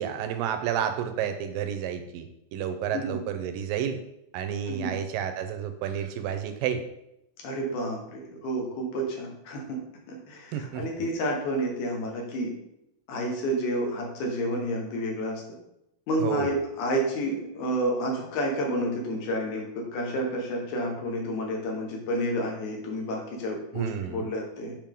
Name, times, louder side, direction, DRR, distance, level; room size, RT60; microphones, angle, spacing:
voice 1, 0.0-2.3 2.5-4.0 4.3-6.8 10.5-10.8 16.2-16.5 23.7-24.3, right 9 dB, 85° right, 8 dB, 2.4 m, -30 dB
voice 2, 7.4-9.8 10.1-12.5 13.1-15.4 16.1-24.8, equal, 65° left, 0 dB, 2.6 m, -30 dB
7.4 x 5.1 x 3.6 m, 0.82 s
omnidirectional pair, 4.0 m